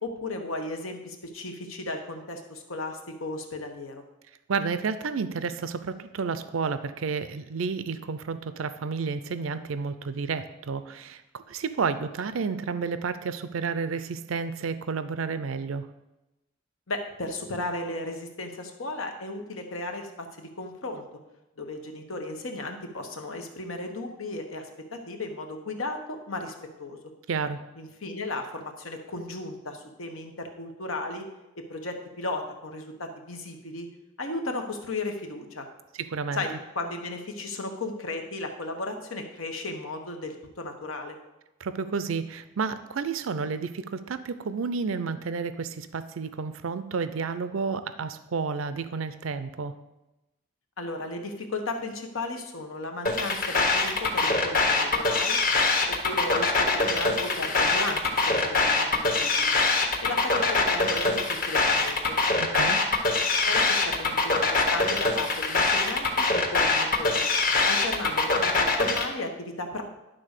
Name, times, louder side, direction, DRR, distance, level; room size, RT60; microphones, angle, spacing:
voice 1, 0.0-4.0 16.9-21.0 21.6-26.5 26.8-27.0 27.8-31.2 31.5-33.9 34.2-35.7 36.3-41.2 50.8-55.4 55.9-59.5 60.0-62.2 63.4-67.3 67.7-69.8, left 2 dB, 90° left, 4 dB, 1.3 m, -35 dB
voice 2, 4.5-15.9 27.3-27.6 36.0-36.4 41.6-49.8 62.4-62.8, right 5 dB, 80° right, 12 dB, 0.5 m, -31 dB
sound 1, 53.1-69.1, left 3 dB, 45° left, 1.2 m, -23 dB
11.0 x 3.9 x 6.6 m, 0.97 s
head